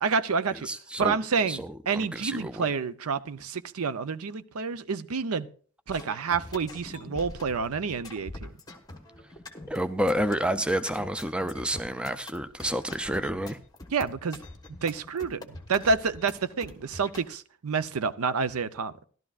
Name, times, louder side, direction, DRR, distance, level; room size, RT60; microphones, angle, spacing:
voice 1, 0.0-0.7 1.0-5.5 5.9-8.5 13.9-14.4 14.8-19.0, right 5 dB, 75° right, 0.6 m, -29 dB
voice 2, 0.6-1.2 1.5-2.7 9.7-13.6, equal, 5° right, 0.4 m, -29 dB
sound 1, 5.9-17.2, left 2 dB, 15° left, 1.2 m, -44 dB
15.0 x 12.0 x 2.4 m
head